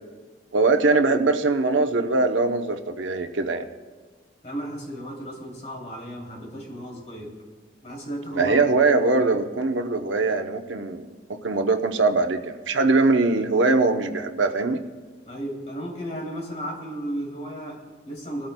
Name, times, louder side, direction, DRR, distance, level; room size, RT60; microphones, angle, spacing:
voice 1, 0.5-3.7 8.3-14.8, right 3 dB, 90° right, 7 dB, 0.8 m, -22 dB
voice 2, 4.4-7.4 7.8-8.6 9.2-9.3 15.3-18.5, right 1 dB, 35° left, -2 dB, 2.9 m, -34 dB
21.5 x 13.0 x 2.2 m, 1.4 s
head